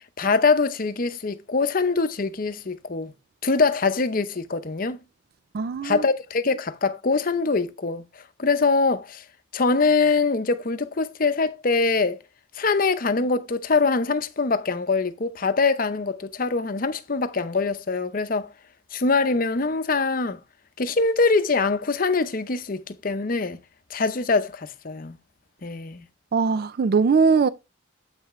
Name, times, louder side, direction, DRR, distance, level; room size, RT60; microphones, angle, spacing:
voice 1, 0.2-3.1 3.4-5.0 5.8-8.0 8.4-9.2 9.5-12.2 12.6-18.5 18.9-20.4 20.8-23.6 23.9-25.2 25.6-26.0, left 4 dB, 45° left, 0.7 m, -23 dB
voice 2, 5.5-6.1 26.3-27.5, right 5 dB, 50° right, 0.4 m, -20 dB
8.1 x 5.8 x 3.1 m
head